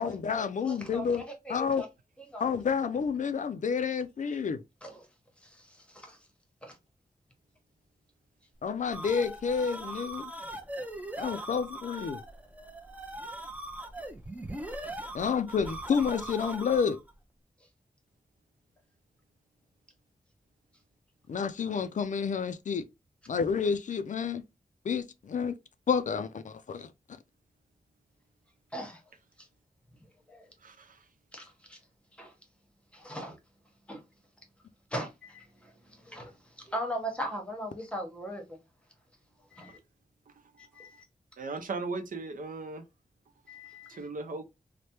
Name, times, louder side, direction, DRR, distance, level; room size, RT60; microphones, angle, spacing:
voice 1, 0.0-1.2 1.5-1.8 2.4-4.6 8.6-10.3 11.2-12.2 15.1-17.0 21.3-22.9 23.3-24.4 24.8-25.5 25.9-26.9, left 6 dB, 60° left, 0.4 m, -29 dB
voice 2, 0.6-1.9 2.2-2.5 4.8-5.1 5.4-6.2 6.6-6.8 28.7-29.0 29.4-29.5 30.3-30.5 31.3-31.8 32.1-32.3 32.9-33.4 33.9-34.0 34.9-38.6 39.5-39.8 40.6-41.1 43.5-44.1, equal, 10° left, 0.9 m, -40 dB
sound 1, 8.6-17.1, right 1 dB, 10° right, 0.5 m, -40 dB
voice 3, 30.6-31.1 41.4-42.8 43.9-44.4, right 3 dB, 70° right, 0.6 m, -37 dB
3.2 x 2.1 x 2.8 m
wide cardioid pair, 135°, 15 cm